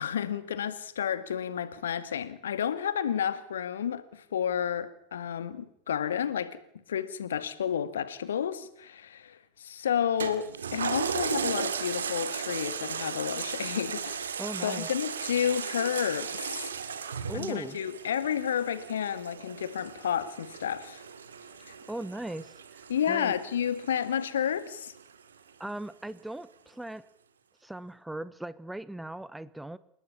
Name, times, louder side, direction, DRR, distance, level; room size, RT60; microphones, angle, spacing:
voice 1, 0.0-6.6 6.9-14.4 14.6-16.7 17.3-21.0 21.6-21.7 22.9-24.9, left 8 dB, 65° left, 13 dB, 2.1 m, -31 dB
Toilet flush, 10.2-25.0 25.5-25.6, right 6 dB, 70° right, 2.5 m, -36 dB
voice 2, 14.4-14.9 17.3-17.8 21.9-23.3 25.6-27.1 27.6-29.8, right 1 dB, 5° right, 18 dB, 1.0 m, -39 dB
29.5 x 18.0 x 7.3 m, 0.75 s
figure-of-eight pair, 90°, 0 cm